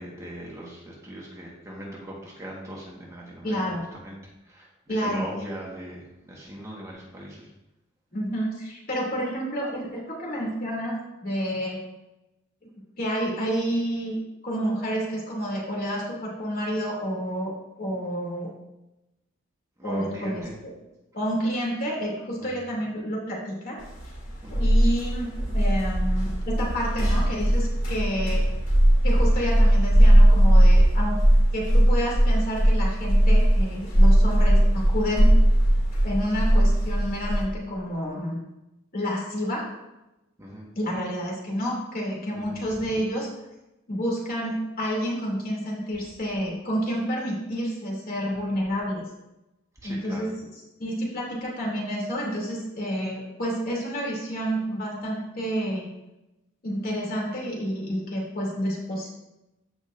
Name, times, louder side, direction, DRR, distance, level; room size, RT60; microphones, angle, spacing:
voice 1, 0.0-3.6 3.9-4.2 4.5-7.5 19.8-20.5 22.4-22.6 24.4-24.7 40.4-40.7 42.3-42.6 49.8-50.3, right 1 dB, 15° right, -4 dB, 1.4 m, -39 dB
voice 2, 3.4-3.8 4.9-5.3 8.1-11.0 11.2-11.8 13.0-14.2 14.4-17.5 17.8-18.5 19.8-20.4 21.1-23.8 24.6-28.5 29.0-31.2 31.5-35.3 36.0-38.4 38.9-39.7 40.7-43.3 43.9-49.0 49.8-50.3 50.8-55.9 56.6-59.1, equal, 45° left, -3 dB, 2.7 m, -29 dB
sound 1, 23.9-37.4, right 1 dB, 65° left, 2.8 m, -19 dB
15.0 x 5.1 x 2.6 m, 0.95 s
head